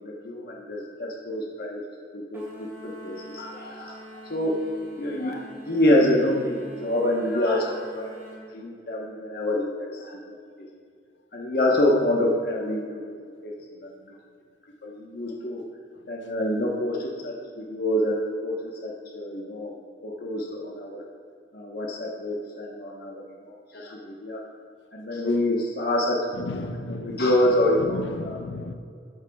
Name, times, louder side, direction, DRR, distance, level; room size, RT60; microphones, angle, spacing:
voice 1, 0.0-1.8 2.1-4.6 5.0-8.1 8.5-10.7 11.3-13.1 13.4-13.5 13.8-14.1 14.8-15.6 16.1-19.7 20.0-21.1 21.5-24.4 24.9-26.4 27.0-28.4, left 1 dB, 55° left, -1 dB, 1.1 m, -26 dB
sound 1, 2.3-8.4, equal, 15° right, 2.8 m, -45 dB
voice 2, 26.3-27.3 27.7-28.7, left 2 dB, 90° left, 9 dB, 0.6 m, -34 dB
13.0 x 11.5 x 2.3 m, 2.2 s
head